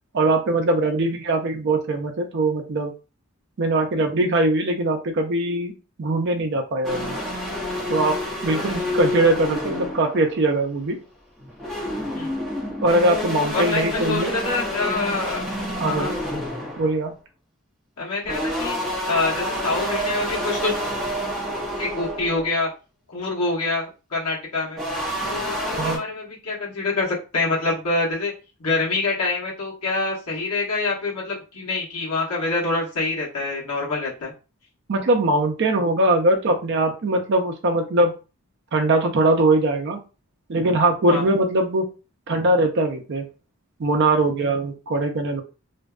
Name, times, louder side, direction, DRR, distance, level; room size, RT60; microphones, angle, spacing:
voice 1, 0.1-2.9 3.6-5.7 6.0-7.2 7.9-8.2 8.4-11.0 12.8-14.3 15.8-16.1 16.8-17.2 25.8-26.0 34.9-38.2 38.7-40.0 40.5-41.9 42.3-43.3 43.8-45.4, right 2 dB, 50° right, 3 dB, 0.4 m, -21 dB
sound 1, 6.8-10.7 11.4-17.0 18.3-22.5 24.8-26.0, equal, ahead, 0.7 m, -28 dB
voice 2, 8.6-8.9 12.1-12.4 13.5-15.4 15.8-16.1 18.0-18.8 19.1-20.8 21.8-22.7 23.1-24.8 25.2-28.3 28.6-34.3 41.1-41.3, left 3 dB, 90° left, -4 dB, 1.0 m, -26 dB
2.5 x 2.2 x 2.3 m, 0.32 s
head